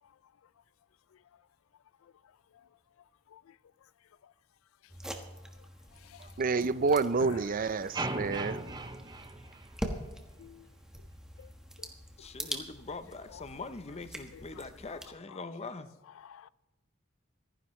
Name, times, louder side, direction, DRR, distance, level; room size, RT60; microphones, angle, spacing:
sound 1, 4.9-15.1, equal, 5° right, 1.3 m, -44 dB
voice 1, 6.4-8.9, right 4 dB, 45° right, 0.5 m, -29 dB
sound 2, 7.9-10.2, right 2 dB, 20° right, 0.8 m, -38 dB
voice 2, 12.2-15.9, left 3 dB, 30° left, 0.7 m, -42 dB
voice 3, 16.2-16.5, left 9 dB, 80° left, 0.4 m, -51 dB
26.0 x 10.0 x 3.2 m
head